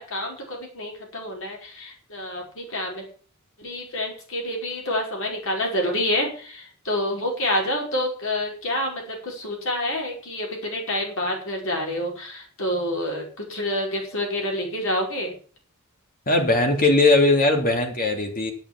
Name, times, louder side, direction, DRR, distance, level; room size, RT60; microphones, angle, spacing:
voice 1, 0.0-3.1 3.6-15.3, left 1 dB, 65° left, 0 dB, 5.1 m, -28 dB
voice 2, 16.3-18.5, left 2 dB, 40° left, 3 dB, 2.9 m, -19 dB
11.0 x 8.8 x 7.3 m, 0.41 s
head